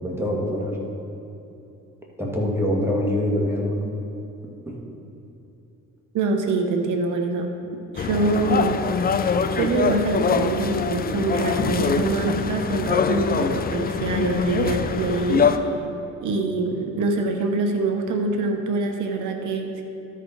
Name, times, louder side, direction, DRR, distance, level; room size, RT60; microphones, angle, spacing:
voice 1, 0.0-0.8 2.2-3.9 4.7-4.8, left 1 dB, 10° right, -2 dB, 1.8 m, -24 dB
voice 2, 6.1-7.5 7.9-9.1 9.5-15.7 16.2-19.8, right 3 dB, 80° right, 3 dB, 0.9 m, -24 dB
sound 1, 8.0-15.6, left 6 dB, 30° left, 0.5 m, -24 dB
13.0 x 5.1 x 4.4 m, 2.9 s
cardioid pair, 90°, 30 cm